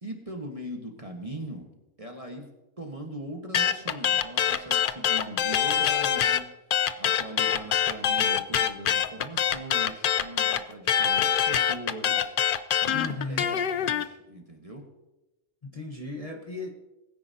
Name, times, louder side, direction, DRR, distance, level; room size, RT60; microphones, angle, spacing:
voice 1, 0.0-1.7 2.0-2.5 2.8-6.5 7.0-12.3 12.8-14.9, right 1 dB, 25° right, 2 dB, 1.3 m, -40 dB
sound 1, 3.5-6.4 6.7-14.0, left 9 dB, 65° left, 0.5 m, -24 dB
voice 2, 12.9-13.5 15.6-16.7, left 3 dB, 30° left, 0 dB, 1.1 m, -35 dB
21.0 x 9.7 x 2.8 m, 0.99 s
omnidirectional pair, 1.5 m